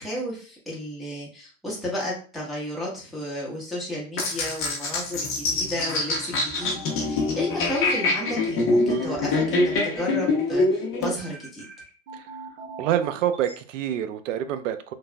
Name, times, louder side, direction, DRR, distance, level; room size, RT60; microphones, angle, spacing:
voice 1, 0.0-11.6, left 1 dB, ahead, -6 dB, 1.0 m, -32 dB
sound 1, 4.2-11.1, left 2 dB, 35° left, 0.8 m, -24 dB
sound 2, 5.1-13.5, right 3 dB, 60° right, 1.1 m, -40 dB
voice 2, 12.8-14.9, right 10 dB, 75° right, 11 dB, 0.5 m, -27 dB
3.2 x 2.3 x 2.2 m, 0.39 s
hypercardioid pair, 105°, 38 cm